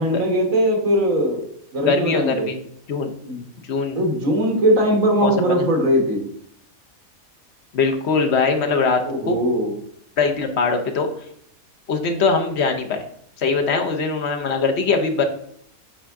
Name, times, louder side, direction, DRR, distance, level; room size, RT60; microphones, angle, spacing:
voice 1, 0.0-1.4 1.7-2.5 3.3-3.4 4.0-6.2 9.1-9.7, equal, 70° right, 2 dB, 1.8 m, -20 dB
voice 2, 1.8-2.6 2.9-3.1 3.7-4.0 5.2-5.7 7.7-9.4 10.2-11.1 11.9-13.0 13.4-15.2, left 4 dB, 55° left, 5 dB, 0.9 m, -21 dB
8.4 x 3.5 x 3.5 m, 0.68 s
omnidirectional pair, 1.5 m